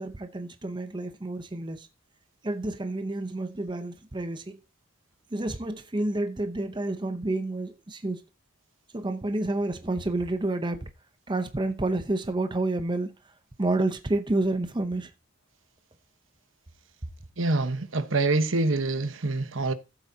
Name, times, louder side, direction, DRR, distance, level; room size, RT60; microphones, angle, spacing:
voice 1, 0.0-1.9 2.4-4.6 5.3-8.2 8.9-10.9 11.3-13.1 13.6-15.1, right 2 dB, 20° right, 0.7 m, -29 dB
voice 2, 17.4-19.7, right 2 dB, 65° right, 1.1 m, -26 dB
14.0 x 7.9 x 2.8 m
head